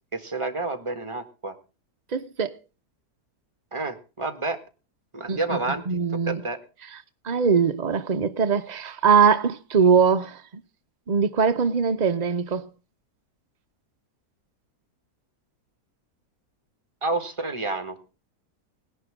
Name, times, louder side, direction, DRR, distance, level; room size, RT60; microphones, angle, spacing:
voice 1, 0.1-1.5 3.7-4.6 5.1-5.8 6.3-6.6 17.0-18.0, right 3 dB, 20° right, 1.7 m, -29 dB
voice 2, 2.1-2.6 5.3-5.6 5.9-6.4 7.2-10.4 11.1-12.7, right 6 dB, 80° right, 0.3 m, -21 dB
18.5 x 11.0 x 3.6 m
omnidirectional pair, 1.8 m